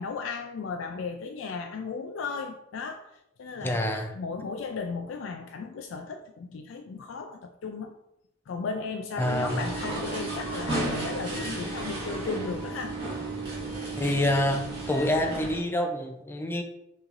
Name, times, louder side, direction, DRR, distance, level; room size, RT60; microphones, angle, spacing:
voice 1, 0.0-3.1 3.4-3.8 4.1-7.9 8.5-13.0, left 4 dB, 80° left, 5 dB, 0.3 m, -35 dB
voice 2, 3.6-4.2 9.2-9.6 14.0-16.6, left 1 dB, 10° left, 4 dB, 0.4 m, -27 dB
sound 1, 9.2-15.6, right 2 dB, 25° right, 1.6 m, -33 dB
6.4 x 3.1 x 2.5 m, 0.83 s
head